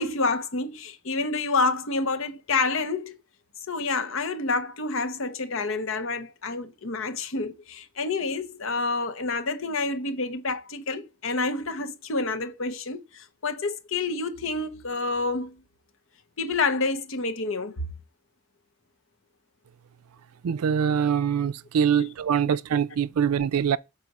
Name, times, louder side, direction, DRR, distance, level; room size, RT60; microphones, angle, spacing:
voice 1, 0.0-3.2 3.7-15.6 16.4-17.9 20.8-20.9 21.9-22.1 22.5-22.6, left 3 dB, 65° left, 0.9 m, -28 dB
voice 2, 20.4-23.8, right 8 dB, 90° right, 0.4 m, -24 dB
6.0 x 4.2 x 5.3 m
head